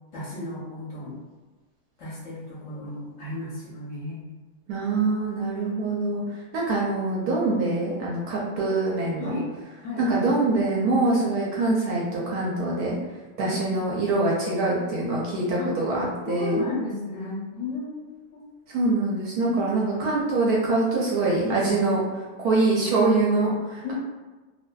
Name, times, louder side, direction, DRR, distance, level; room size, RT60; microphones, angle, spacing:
voice 1, 0.1-1.2 2.0-4.3 4.7-4.9 9.2-9.5 9.8-10.1 13.4-13.6 15.6-15.7 16.3-18.4 19.4-19.8 21.4-21.7 23.8-23.9, left 2 dB, 60° left, -7 dB, 0.9 m, -33 dB
voice 2, 4.7-9.3 10.0-13.0 13.4-16.6 18.7-23.9, right 2 dB, 70° right, -4 dB, 0.9 m, -24 dB
2.6 x 2.5 x 2.2 m, 1.3 s
omnidirectional pair, 1.9 m